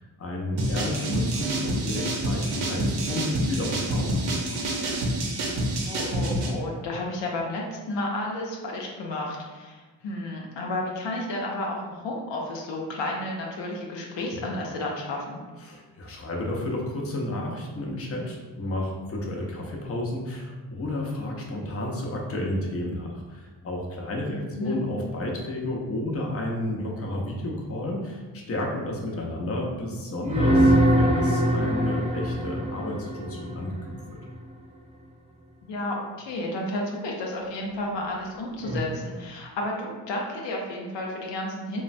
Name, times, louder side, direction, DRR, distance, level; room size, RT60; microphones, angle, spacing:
voice 1, 0.0-4.6 15.6-33.8 34.1-34.2, left 1 dB, 35° left, -1 dB, 0.6 m, -31 dB
sound 1, 0.6-6.5, right 1 dB, 65° right, 0.7 m, -27 dB
voice 2, 5.9-15.4 24.3-24.8 35.6-41.8, left 1 dB, 80° left, -1 dB, 0.6 m, -32 dB
sound 2, 30.2-34.1 38.6-38.8, equal, 15° right, 0.5 m, -23 dB
3.0 x 2.1 x 2.5 m, 1.3 s
cardioid pair, 60°, 43 cm